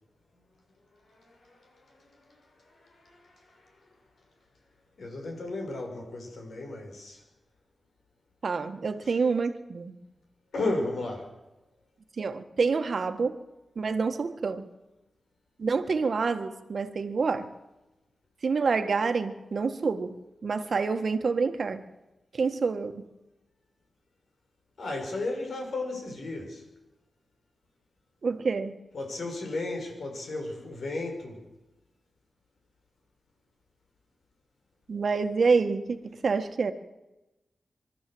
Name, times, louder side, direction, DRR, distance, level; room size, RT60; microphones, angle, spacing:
voice 1, 1.1-1.8 2.2-2.4 2.7-3.7 5.0-7.2 9.1-9.2 10.5-11.3 24.8-26.7 28.9-31.4, left 2 dB, 75° left, 2 dB, 5.9 m, -34 dB
voice 2, 8.4-10.0 12.2-13.4 13.7-14.7 15.6-17.5 18.4-20.2 20.4-21.8 22.3-23.0 28.2-28.8 34.9-36.7, right 4 dB, 60° right, 9 dB, 1.6 m, -27 dB
24.5 x 13.0 x 7.9 m, 1.0 s
wide cardioid pair, 90°, 0 cm